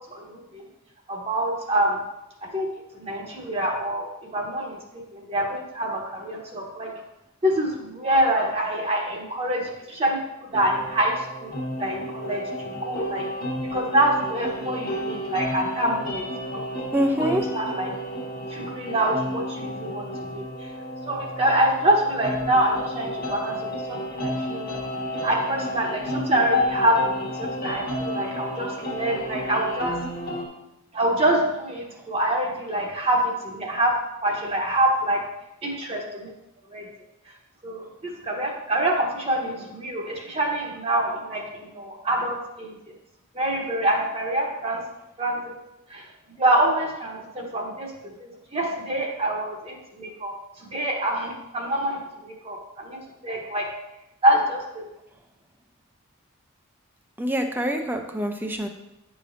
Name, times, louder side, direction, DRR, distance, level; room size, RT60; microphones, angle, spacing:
voice 1, 0.1-0.6 1.1-2.0 2.4-2.7 2.9-4.8 5.1-6.9 7.4-10.2 10.5-11.5 11.8-13.3 13.7-16.3 17.2-17.9 18.5-20.1 20.3-20.7 21.1-24.7 25.2-30.0 30.9-34.0 34.2-35.2 35.6-36.3 36.7-36.8 37.6-42.7 43.3-44.8 45.2-45.5 45.9-47.9 48.2-50.3 50.6-53.7 54.2-54.8, right 1 dB, 25° right, -1 dB, 0.9 m, -25 dB
sound 1, 10.5-30.5, left 1 dB, 40° left, 1.2 m, -31 dB
voice 2, 16.9-17.5 57.2-58.7, right 1 dB, 10° right, 5 dB, 0.5 m, -25 dB
9.6 x 5.0 x 2.6 m, 0.92 s
head